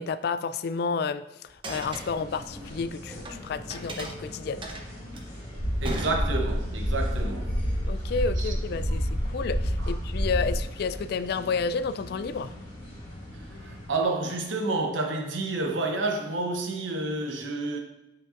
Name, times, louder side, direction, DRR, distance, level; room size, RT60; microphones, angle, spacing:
voice 1, 0.0-4.6 7.9-12.5, left 5 dB, 55° left, 0.3 m, -31 dB
sound 1, 1.5-3.4 3.7-6.8, right 1 dB, 25° right, 0.7 m, -39 dB
sound 2, 1.7-13.9, equal, 25° left, 1.8 m, -42 dB
sound 3, 5.6-10.6, equal, 85° left, 2.2 m, -28 dB
voice 2, 5.8-7.6 8.4-8.5 9.8-9.9 13.6-17.8, right 2 dB, 80° right, 0.8 m, -29 dB
8.2 x 5.1 x 2.5 m
head